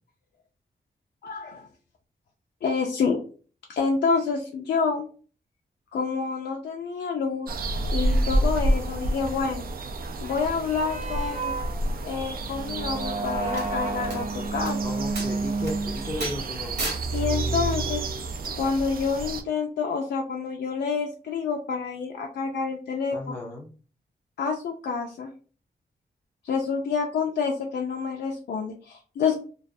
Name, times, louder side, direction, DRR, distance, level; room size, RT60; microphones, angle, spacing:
voice 1, 1.2-1.7 2.6-3.2 3.7-5.1 5.9-7.5 7.9-9.7 10.2-11.6 12.0-14.8 17.1-18.1 18.6-23.4 24.4-25.3 26.4-29.4, left 5 dB, 85° left, 0 dB, 0.4 m, -28 dB
sound 1, 7.5-19.4, right 1 dB, 60° right, 0.4 m, -30 dB
sound 2, 10.8-18.6, right 3 dB, 45° right, 0.8 m, -31 dB
sound 3, 13.6-13.7 14.1-14.2 14.7-14.8 15.2-15.3 15.7-15.8 16.2-16.4 16.8-17.0 18.4-18.5, right 2 dB, 90° right, 1.0 m, -32 dB
voice 2, 14.8-16.9 23.1-23.7, left 1 dB, 10° left, 0 dB, 0.4 m, -35 dB
2.3 x 2.2 x 2.5 m, 0.38 s
wide cardioid pair, 125°, 17 cm